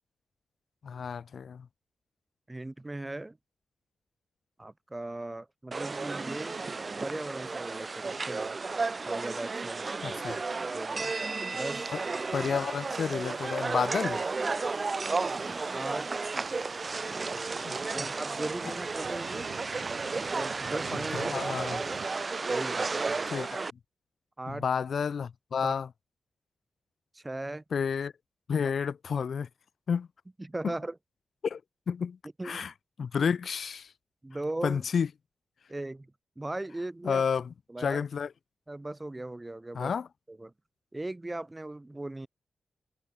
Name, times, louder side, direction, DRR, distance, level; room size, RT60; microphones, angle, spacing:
voice 1, 0.8-1.6 10.0-10.4 11.9-12.0 12.3-14.2 17.6-18.1 21.1-21.8 23.3-23.6 24.5-25.9 27.7-28.1 28.5-29.5 29.9-30.1 31.4-31.6 31.9-32.2 32.4-32.7 33.0-33.9 34.6-35.1 37.0-38.3 39.7-40.1, left 6 dB, 55° left, 1.3 m, -30 dB
voice 2, 2.5-3.4 4.6-6.6 7.0-8.6 9.1-10.2 10.7-11.1 11.5-11.9 15.7-16.1 17.9-19.5 20.3-21.3 21.8-22.1 22.5-23.3 24.4-24.7 25.6-25.7 27.1-27.6 28.6-28.7 30.4-31.0 32.4-32.7 34.2-34.8 35.7-36.1 36.4-37.2 37.7-38.0 38.7-39.9 40.3-40.5 40.9-42.3, right 2 dB, 15° right, 2.6 m, -38 dB
sound 1, 5.7-23.7, right 4 dB, 30° right, 0.4 m, -33 dB
sound 2, 11.7-22.1, right 8 dB, 90° right, 2.1 m, -50 dB
wide cardioid pair, 165°, 0 cm